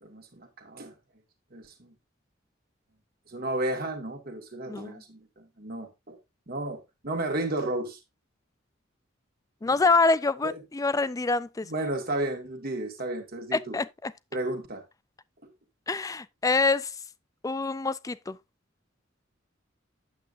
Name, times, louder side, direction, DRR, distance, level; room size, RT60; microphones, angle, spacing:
voice 1, 0.0-0.9 1.5-1.9 3.3-6.2 6.5-8.0 9.6-9.8 10.4-10.6 11.6-13.8 14.3-14.8, right 1 dB, 50° right, 1.9 m, -33 dB
voice 2, 4.7-5.0 9.6-11.7 13.5-14.1 15.9-16.9 17.4-18.4, left 3 dB, 15° left, 0.4 m, -26 dB
9.2 x 7.9 x 2.5 m
head